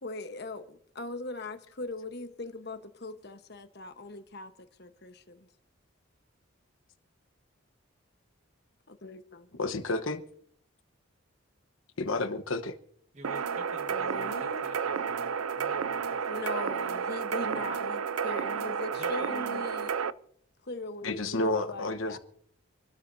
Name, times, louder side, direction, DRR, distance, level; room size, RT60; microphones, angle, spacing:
voice 1, 0.0-5.5 8.9-9.5 13.9-14.7 16.3-20.0 20.6-22.2, left 2 dB, 50° left, 1.2 m, -40 dB
voice 2, 9.6-10.2 12.0-12.8 21.0-22.2, left 2 dB, 75° left, 1.1 m, -30 dB
voice 3, 13.1-16.4 16.9-17.1 17.5-17.6 19.0-19.6, right 2 dB, 35° right, 1.6 m, -49 dB
sound 1, 13.2-20.1, right 6 dB, 90° right, 0.6 m, -31 dB
27.0 x 13.0 x 2.7 m
head